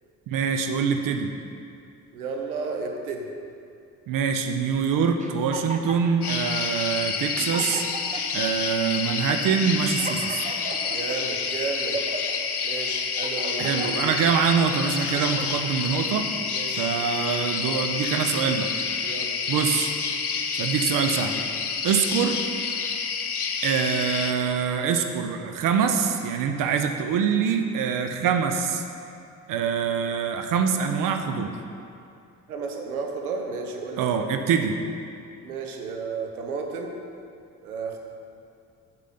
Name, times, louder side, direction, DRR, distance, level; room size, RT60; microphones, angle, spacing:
voice 1, 0.3-1.3 4.1-7.8 8.3-10.4 13.6-16.3 16.7-18.7 19.5-19.9 20.5-21.4 21.8-22.4 23.6-28.8 29.5-31.5 34.0-34.7, right 6 dB, 45° right, 6 dB, 0.7 m, -24 dB
voice 2, 2.1-3.3 10.9-12.0 12.6-14.1 16.5-16.9 19.0-19.4 32.5-34.3 35.4-36.9 37.6-38.0, right 4 dB, 75° right, 3 dB, 0.9 m, -33 dB
sound 1, 5.2-6.4 7.0-7.1 7.4-8.4 9.0-9.2 9.6-11.2 11.7-12.4 12.9-14.2 14.7-15.7, right 3 dB, 15° right, 0.8 m, -36 dB
sound 2, 6.2-24.3, left 5 dB, 85° left, 0.6 m, -29 dB
8.2 x 6.7 x 5.7 m, 2.5 s
figure-of-eight pair, 45°, 44 cm